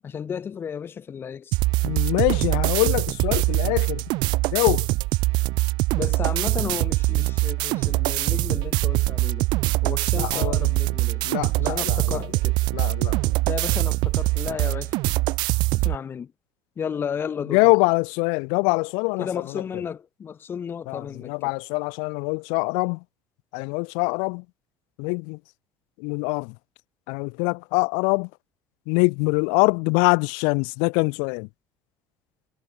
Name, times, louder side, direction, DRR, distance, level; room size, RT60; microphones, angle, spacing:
voice 1, 0.0-1.5 5.9-9.5 9.8-11.3 11.6-12.6 13.5-15.0 15.8-16.3 16.8-17.7 19.2-21.3, left 7 dB, 30° left, 1.5 m, -33 dB
sound 1, 1.5-16.0, right 21 dB, 65° right, 0.7 m, -23 dB
voice 2, 1.8-4.0 4.5-4.9 10.2-10.7 11.2-12.3 12.7-13.3 17.5-19.6 20.9-23.0 23.5-24.4 25.0-25.4 26.0-26.6 27.1-28.3 28.9-31.5, left 37 dB, 85° left, 0.4 m, -24 dB
cardioid pair, 145°, 8 cm